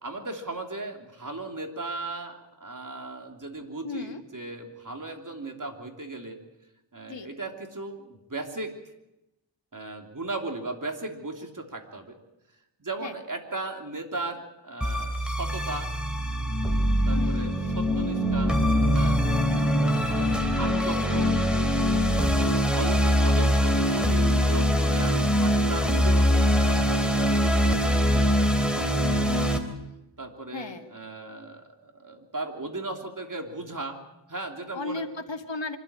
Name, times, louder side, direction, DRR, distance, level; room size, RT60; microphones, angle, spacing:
voice 1, 0.0-6.4 6.9-8.8 9.7-12.2 12.8-15.9 17.1-18.6 18.9-19.2 19.8-21.4 22.2-29.5 30.2-34.0 34.3-35.0, right 2 dB, 40° right, 3 dB, 3.2 m, -37 dB
voice 2, 3.8-4.2 7.1-7.3 13.0-13.1 17.1-17.5 19.5-19.8 30.5-30.9 34.7-35.8, left 3 dB, 65° left, 5 dB, 1.9 m, -35 dB
sound 1, 14.8-29.6, equal, ahead, 3.2 m, -23 dB
25.0 x 13.0 x 8.8 m, 0.94 s
wide cardioid pair, 55°, 47 cm